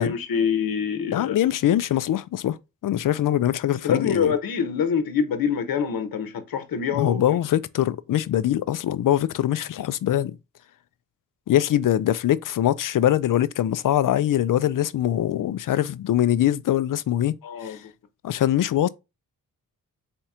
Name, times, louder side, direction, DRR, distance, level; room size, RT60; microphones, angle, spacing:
voice 1, 0.0-1.4 3.8-7.3 17.4-17.8, left 7 dB, 85° left, 0.9 m, -25 dB
voice 2, 1.1-2.6 2.8-4.3 6.9-10.4 11.5-17.3 17.6-17.8 18.2-18.9, left 12 dB, 65° left, 0.4 m, -23 dB
4.3 x 2.9 x 3.5 m
wide cardioid pair, 105°, 35 cm